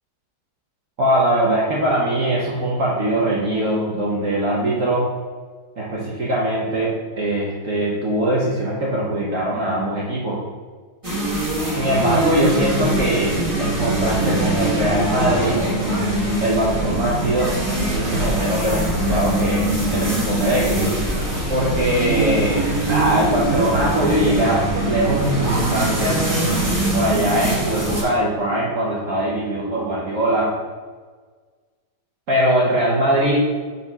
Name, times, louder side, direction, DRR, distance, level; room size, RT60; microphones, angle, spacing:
voice 1, 1.0-5.1 5.8-10.4 11.8-13.3 13.6-15.6 16.4-20.8 21.5-26.3 26.9-30.5 32.3-33.5, right 1 dB, 50° right, -5 dB, 1.1 m, -21 dB
sound 1, 11.0-28.0, right 1 dB, 20° right, 1.2 m, -22 dB
4.6 x 4.2 x 5.3 m, 1.5 s
omnidirectional pair, 2.0 m